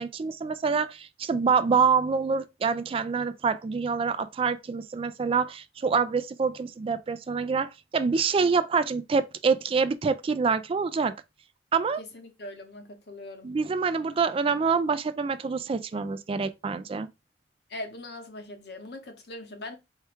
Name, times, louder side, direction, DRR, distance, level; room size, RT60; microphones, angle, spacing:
voice 1, 0.0-11.1 11.7-12.0 13.4-17.1, right 5 dB, 30° right, 0.3 m, -26 dB
voice 2, 12.0-13.5 17.7-19.8, left 1 dB, 65° left, 1.0 m, -41 dB
4.6 x 2.3 x 4.3 m
head